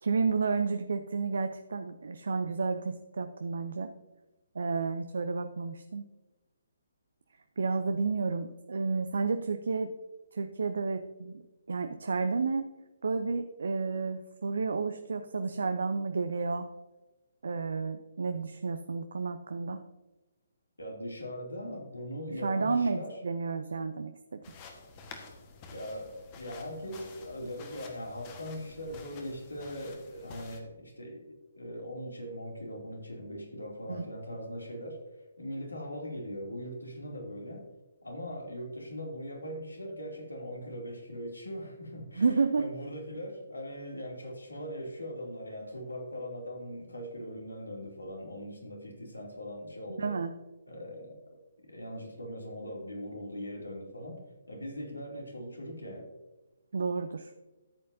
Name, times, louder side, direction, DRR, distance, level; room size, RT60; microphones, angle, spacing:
voice 1, 0.0-3.9 4.5-6.1 7.6-9.9 10.3-11.3 11.7-12.7 13.0-16.7 17.4-19.8 22.3-24.4 33.9-34.1 42.2-42.6 50.0-50.3 56.7-57.3, right 4 dB, 60° right, 8 dB, 0.6 m, -31 dB
voice 2, 20.8-23.2 25.7-35.0 35.4-37.6 38.0-42.2 42.6-50.1 50.7-51.1 51.7-54.2 54.5-56.1, equal, 75° left, 0 dB, 2.7 m, -40 dB
sound 1, 24.4-30.6, left 4 dB, 25° left, 1.3 m, -50 dB
13.5 x 8.5 x 2.7 m, 1.1 s
figure-of-eight pair, 135°, 0 cm